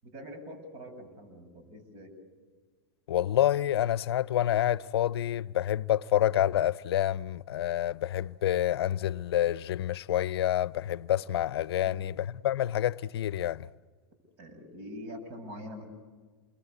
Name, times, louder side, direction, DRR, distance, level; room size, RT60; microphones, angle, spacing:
voice 1, 0.0-2.2 11.8-12.0 14.4-15.9, equal, 50° right, 7.6 m, -44 dB
voice 2, 3.1-13.7, left 12 dB, 80° left, 0.7 m, -28 dB
28.5 x 23.0 x 8.2 m
hypercardioid pair, 120°, 13 cm